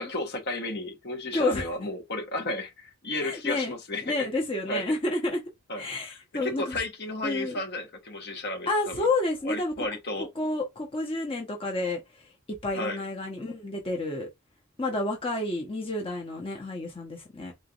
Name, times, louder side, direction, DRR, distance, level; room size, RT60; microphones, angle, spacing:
voice 1, 0.0-4.0 4.7-4.8 5.7-5.8 6.4-9.0 9.4-10.3 12.7-13.0, left 2 dB, 50° left, 1.1 m, -33 dB
voice 2, 1.3-1.7 3.2-3.7 4.0-5.4 5.7-6.8 7.2-7.6 8.7-9.9 10.2-14.3 14.8-17.5, left 2 dB, 25° left, 0.9 m, -30 dB
4.0 x 3.3 x 2.5 m
head